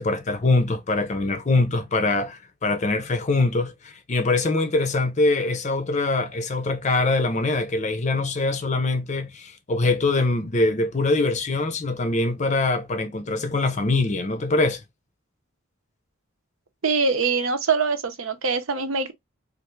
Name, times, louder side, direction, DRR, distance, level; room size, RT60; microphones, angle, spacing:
voice 1, 0.0-14.8, left 2 dB, 35° left, 0.5 m, -23 dB
voice 2, 16.8-19.1, right 4 dB, 80° right, 0.7 m, -23 dB
3.3 x 2.5 x 3.0 m
head